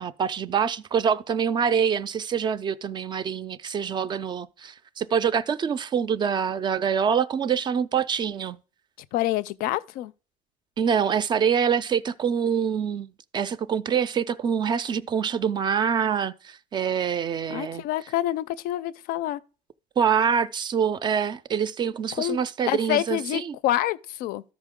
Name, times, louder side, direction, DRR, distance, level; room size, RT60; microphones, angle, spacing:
voice 1, 0.0-8.6 10.8-13.1 13.3-17.8 20.0-23.5, right 7 dB, 30° right, 0.4 m, -25 dB
voice 2, 9.1-10.1 17.5-19.4 22.1-22.4 22.7-24.4, left 14 dB, 65° left, 0.4 m, -27 dB
13.0 x 4.9 x 3.6 m
cardioid pair, 130°, 16 cm